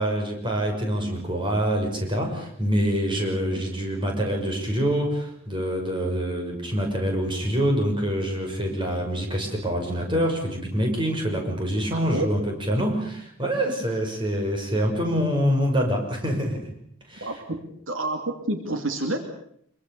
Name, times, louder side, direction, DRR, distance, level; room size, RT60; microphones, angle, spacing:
voice 1, 0.0-16.6 17.1-17.3, equal, 20° right, 2 dB, 6.0 m, -25 dB
voice 2, 11.9-12.3 17.2-19.2, right 2 dB, 65° right, 6 dB, 2.7 m, -29 dB
25.0 x 23.5 x 6.9 m, 0.68 s
head